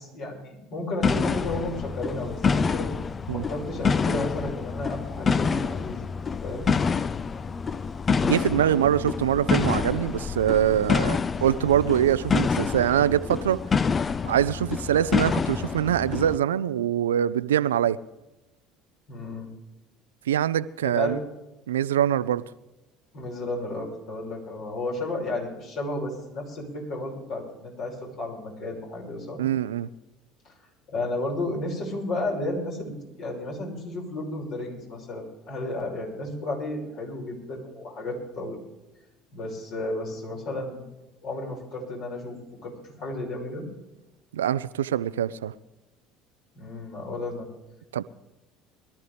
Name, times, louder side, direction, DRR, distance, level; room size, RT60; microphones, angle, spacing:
voice 1, 0.0-3.0 3.3-6.0 6.4-6.7 19.1-19.5 20.8-21.2 23.1-29.4 30.4-30.5 30.9-38.6 39.3-40.8 41.2-43.6 46.6-47.5, left 2 dB, 55° left, 5.5 m, -33 dB
sound 1, 1.0-16.4, left 5 dB, 30° left, 0.5 m, -27 dB
voice 2, 8.2-13.6 14.3-18.0 20.3-21.2 21.7-22.4 29.4-29.9 44.3-45.5 47.9-48.0, right 10 dB, 80° right, 0.4 m, -24 dB
22.0 x 13.0 x 3.4 m
hypercardioid pair, 65°, 0 cm